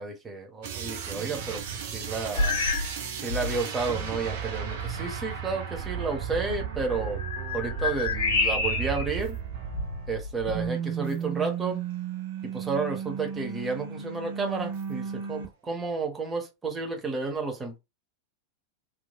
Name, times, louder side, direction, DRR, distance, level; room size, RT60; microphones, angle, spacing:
voice 1, 0.0-2.6 3.2-7.2 7.5-9.4 10.1-11.8 12.5-17.8, right 4 dB, 15° right, 0.8 m, -31 dB
sound 1, 0.6-10.2 10.4-15.5, right 8 dB, 55° right, 0.6 m, -34 dB
sound 2, 2.3-3.0 3.3-3.6 4.3-4.4 6.8-9.1 9.7-10.7, left 3 dB, 65° left, 0.7 m, -29 dB
3.0 x 2.4 x 2.2 m
figure-of-eight pair, 90°, 0 cm